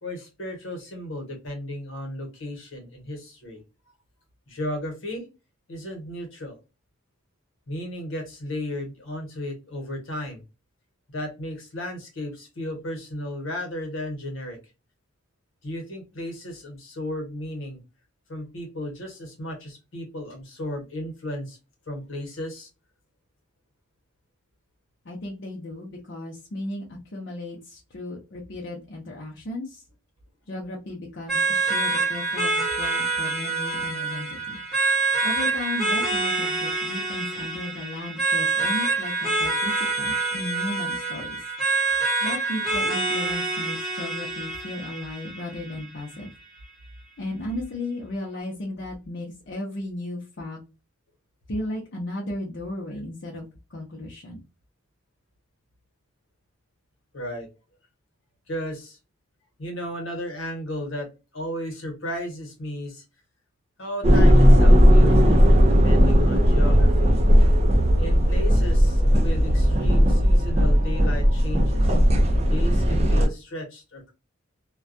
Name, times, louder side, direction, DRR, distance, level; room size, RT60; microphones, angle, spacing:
voice 1, 0.0-3.6 4.5-5.3 5.7-6.6 7.7-10.4 11.1-14.6 15.6-17.8 18.3-21.6 21.9-22.7 57.1-57.5 58.5-59.0 59.6-63.0 63.8-67.1 68.0-72.0 72.5-74.1, left 1 dB, 75° left, 2 dB, 1.0 m, -34 dB
voice 2, 25.0-26.8 27.1-29.8 30.5-34.6 35.2-41.4 42.2-46.3 47.2-50.6 51.5-53.5 53.7-54.4, left 1 dB, 60° left, -3 dB, 0.6 m, -35 dB
sound 1, 31.3-46.3, right 3 dB, ahead, 0.9 m, -26 dB
sound 2, 64.0-73.3, equal, 30° right, 0.4 m, -17 dB
2.3 x 2.2 x 2.5 m, 0.28 s
head